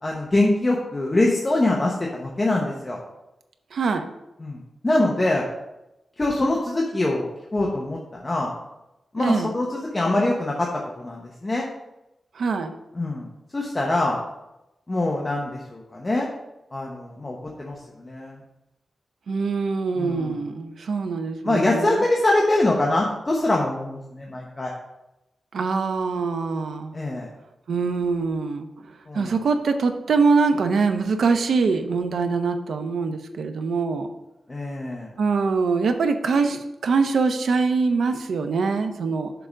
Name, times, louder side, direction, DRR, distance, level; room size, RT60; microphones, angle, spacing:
voice 1, 0.0-3.0 4.4-5.4 6.2-8.5 9.1-10.7 11.0-11.7 12.9-14.2 14.9-16.3 16.7-18.4 20.0-20.4 21.4-24.7 26.9-27.3 29.1-29.3 34.5-35.1, left 2 dB, 25° left, -2 dB, 1.0 m, -24 dB
voice 2, 3.7-4.0 9.2-9.5 12.3-12.7 19.3-22.0 25.5-26.9 27.7-28.7 29.1-34.1 35.2-39.3, right 4 dB, 90° right, 6 dB, 0.7 m, -23 dB
6.8 x 3.8 x 6.3 m, 0.92 s
wide cardioid pair, 125°, 0 cm